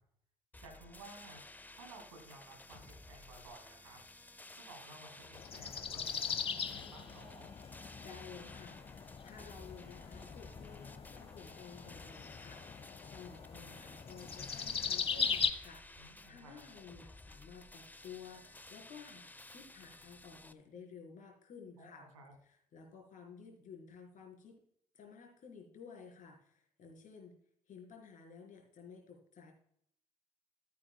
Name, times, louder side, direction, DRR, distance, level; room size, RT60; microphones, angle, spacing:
sound 1, 0.5-20.5, left 2 dB, 10° left, 0.7 m, -55 dB
voice 1, 0.6-4.0 4.5-7.5 16.0-16.6 21.8-22.3, right 2 dB, 80° right, 3 dB, 2.7 m, -55 dB
sound 2, 5.4-15.5, left 6 dB, 35° left, 0.9 m, -40 dB
voice 2, 8.0-22.1 22.5-24.6 24.9-27.3 27.7-29.5, left 6 dB, 50° left, 0 dB, 4.4 m, -54 dB
15.0 x 8.5 x 2.3 m, 0.68 s
figure-of-eight pair, 50°, 17 cm